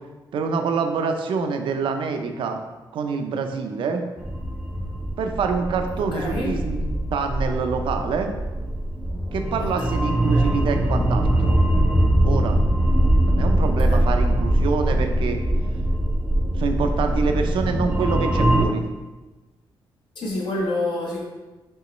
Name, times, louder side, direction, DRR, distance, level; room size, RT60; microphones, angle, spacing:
voice 1, 0.3-2.6 2.9-4.0 5.2-8.3 9.3-11.6 12.2-12.6 13.2-15.4 16.6-18.8, right 5 dB, 75° right, 5 dB, 0.5 m, -26 dB
sound 1, 4.2-18.7, right 1 dB, 10° right, 0.4 m, -22 dB
voice 2, 5.9-6.6 9.6-9.7 10.3-10.5 13.6-14.1 20.2-21.2, left 2 dB, 60° left, -2 dB, 0.7 m, -28 dB
5.4 x 3.0 x 3.1 m, 1.1 s
wide cardioid pair, 145°, 9 cm